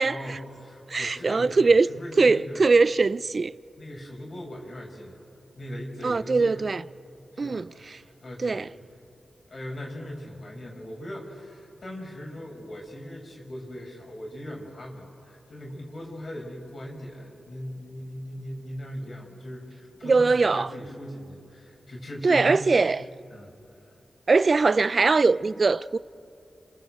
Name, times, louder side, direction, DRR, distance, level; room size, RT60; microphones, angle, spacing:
voice 1, 0.0-2.7 3.8-5.2 5.5-6.7 7.3-8.7 9.5-22.9 23.3-23.5, equal, 55° left, 5.8 m, -39 dB
voice 2, 0.9-1.9 2.2-3.5 6.0-6.8 7.4-8.0 8.4-8.7 20.0-20.7 22.2-23.0 24.3-26.0, right 4 dB, 55° right, 0.5 m, -21 dB
27.5 x 27.0 x 7.9 m
cardioid pair, 45°, 0 cm